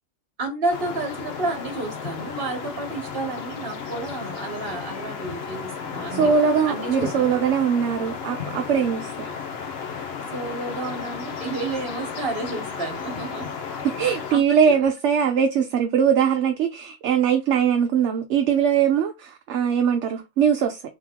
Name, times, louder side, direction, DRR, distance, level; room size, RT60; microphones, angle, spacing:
voice 1, 0.4-6.3 6.7-7.3 10.3-13.5 14.0-14.8, right 2 dB, 45° right, 1.4 m, -31 dB
sound 1, 0.7-14.4, left 6 dB, 55° left, 0.9 m, -34 dB
voice 2, 6.1-9.3 14.0-20.8, right 7 dB, 65° right, 0.8 m, -21 dB
3.6 x 3.0 x 3.5 m
omnidirectional pair, 1.4 m